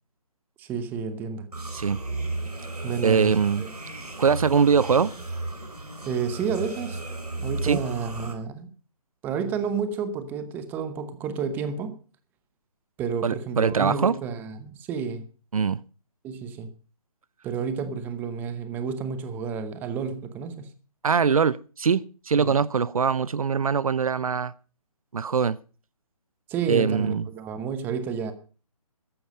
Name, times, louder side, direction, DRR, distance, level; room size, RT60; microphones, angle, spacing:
voice 1, 0.6-1.5 2.8-3.7 6.1-7.0 7.4-8.7 9.2-12.0 13.0-15.3 16.2-16.7 17.4-20.7 22.4-22.6 26.5-28.3, right 6 dB, 10° right, 0.9 m, -30 dB
sound 1, 1.5-8.3, right 2 dB, 90° right, 4.2 m, -34 dB
voice 2, 3.0-3.7 4.2-5.1 7.6-7.8 13.2-14.2 15.5-15.8 21.0-24.5 25.1-25.6 26.7-27.3, right 6 dB, 65° right, 0.6 m, -22 dB
14.0 x 10.5 x 5.3 m
figure-of-eight pair, 155°, 19 cm